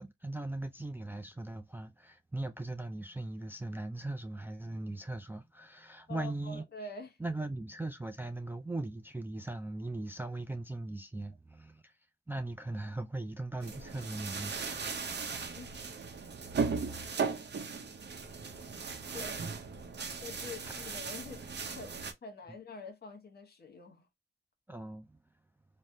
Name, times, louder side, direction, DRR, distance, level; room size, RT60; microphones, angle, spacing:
voice 1, 0.0-6.6 7.2-11.9 12.3-14.9 20.7-21.0 24.7-25.2, right 2 dB, 10° right, 0.4 m, -39 dB
voice 2, 6.1-7.2 15.5-15.8 19.1-19.6 20.2-24.1, left 3 dB, 50° left, 1.0 m, -46 dB
sound 1, 13.6-22.1, right 5 dB, 55° right, 0.7 m, -37 dB
3.3 x 2.1 x 2.6 m
cardioid pair, 55°, 21 cm